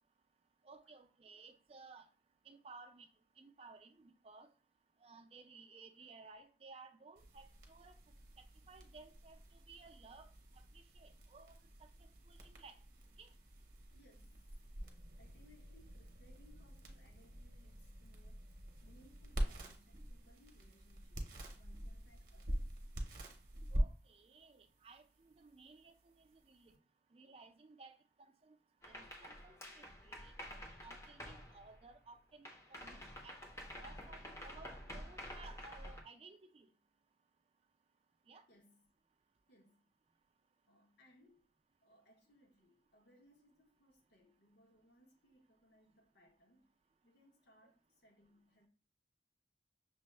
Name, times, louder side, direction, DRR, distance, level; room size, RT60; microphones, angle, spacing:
voice 1, 0.6-2.1 2.5-3.1 3.4-4.5 5.0-8.0 8.4-10.3 10.7-12.8 13.2-13.3 23.7-26.7 27.1-28.6 28.9-30.3 30.8-33.0 33.2-33.4 33.8-36.7 38.3-38.4, right 4 dB, 35° right, 0.4 m, -58 dB
sound 1, 7.2-26.8, equal, 50° right, 0.7 m, -45 dB
voice 2, 13.9-14.7 15.2-22.7 38.5-38.9 39.5-39.9 40.7-41.5 41.8-46.7 47.0-48.7, left 1 dB, 80° left, 0.9 m, -68 dB
sound 2, 28.8-32.1 32.4-36.0, equal, 15° left, 0.5 m, -50 dB
6.1 x 2.1 x 3.2 m
head